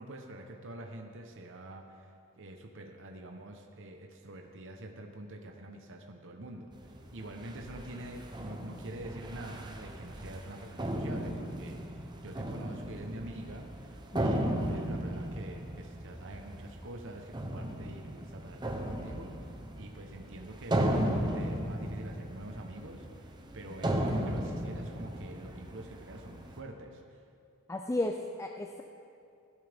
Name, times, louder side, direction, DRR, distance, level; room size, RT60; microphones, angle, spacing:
voice 1, 0.0-27.2, right 1 dB, 60° right, 3 dB, 1.0 m, -46 dB
sound 1, 6.7-26.6, right 1 dB, 20° right, 0.8 m, -36 dB
voice 2, 14.1-14.5 27.7-28.8, left 1 dB, 15° left, 3 dB, 0.4 m, -34 dB
16.5 x 11.5 x 3.5 m, 2.5 s
head